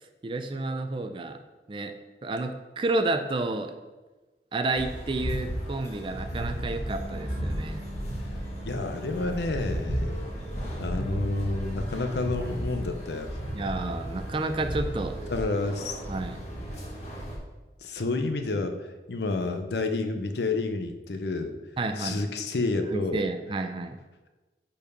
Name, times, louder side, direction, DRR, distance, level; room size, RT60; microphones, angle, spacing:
voice 1, 0.2-1.4 1.7-1.9 2.2-3.7 4.5-7.9 13.5-15.3 16.1-16.4 21.8-22.2 22.9-24.0, right 2 dB, 30° right, 7 dB, 0.4 m, -30 dB
sound 1, 4.7-17.4, equal, 40° left, 1.5 m, -34 dB
Bass guitar, 6.9-13.1, right 1 dB, 75° right, 1.8 m, -48 dB
voice 2, 8.6-10.1 10.8-13.4 15.3-16.0 17.8-21.6 22.0-23.2, left 3 dB, 70° left, 7 dB, 0.6 m, -30 dB
5.3 x 4.4 x 5.3 m, 1.2 s
head